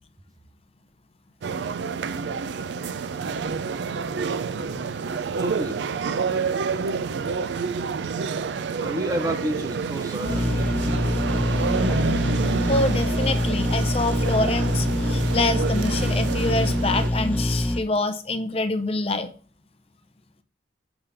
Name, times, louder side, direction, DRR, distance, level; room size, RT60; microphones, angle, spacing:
sound 1, 1.4-17.1, right 5 dB, 75° right, 0.4 m, -28 dB
voice 1, 5.4-5.8 8.8-11.4, right 1 dB, 20° right, 7 dB, 0.7 m, -31 dB
sound 2, 10.2-17.8, left 1 dB, 10° left, 0.9 m, -24 dB
voice 2, 12.6-19.3, left 2 dB, 35° left, 9 dB, 0.6 m, -26 dB
6.9 x 3.7 x 5.5 m, 0.38 s
head